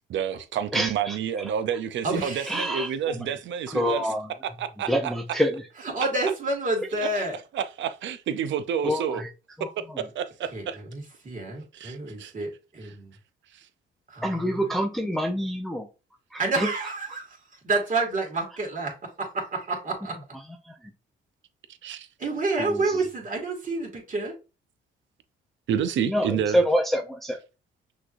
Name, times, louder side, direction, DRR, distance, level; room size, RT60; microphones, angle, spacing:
voice 1, 0.1-4.1 4.6-4.9 7.0-7.1 7.5-9.2 10.0-10.8 11.7-12.3 13.5-13.6 21.8-22.1 25.7-26.6, right 8 dB, 70° right, 0.6 m, -29 dB
voice 2, 0.7-1.2 2.5-3.3 3.7-4.3 4.9-5.6 8.8-9.3 9.6-10.1 14.2-15.9 16.3-16.7 20.6-20.7 22.6-23.0 26.1-27.4, equal, ahead, 0.6 m, -27 dB
voice 3, 2.0-2.7 5.9-7.4 10.5-13.1 14.1-14.7 16.4-17.4 17.6-18.9 19.2-20.2 22.2-24.3, right 3 dB, 40° right, 2.2 m, -29 dB
6.0 x 3.1 x 2.6 m
cardioid pair, 90°, 20 cm